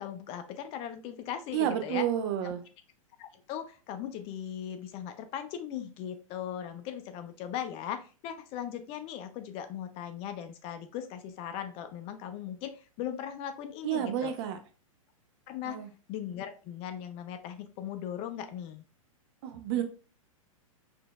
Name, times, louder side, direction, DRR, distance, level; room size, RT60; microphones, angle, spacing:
voice 1, 0.0-2.0 2.4-2.5 3.2-14.3 15.5-15.8 16.1-18.8, left 9 dB, 35° left, 8 dB, 0.5 m, -38 dB
voice 2, 1.5-2.6 13.8-14.6 15.6-15.9 19.4-19.8, right 10 dB, 45° right, 7 dB, 0.7 m, -30 dB
5.9 x 2.5 x 2.3 m, 0.35 s
figure-of-eight pair, 105°, 18 cm